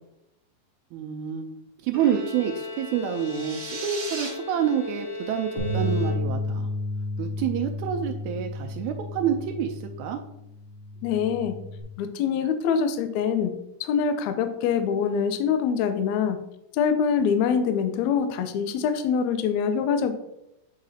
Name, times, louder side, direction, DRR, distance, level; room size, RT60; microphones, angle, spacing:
voice 1, 0.9-1.4 1.8-6.7 7.2-10.2, right 9 dB, 85° right, 5 dB, 1.7 m, -28 dB
Bowed string instrument, 1.9-6.6, left 3 dB, 20° right, 0.9 m, -37 dB
sound 1, 3.0-4.3, right 3 dB, 45° right, 0.9 m, -36 dB
Bass guitar, 5.6-11.8, left 2 dB, 60° left, 0.8 m, -32 dB
voice 2, 11.0-11.5 12.0-13.5 13.8-16.4 16.7-20.2, left 7 dB, 85° left, 8 dB, 1.6 m, -24 dB
7.5 x 4.9 x 2.7 m, 0.86 s
omnidirectional pair, 3.9 m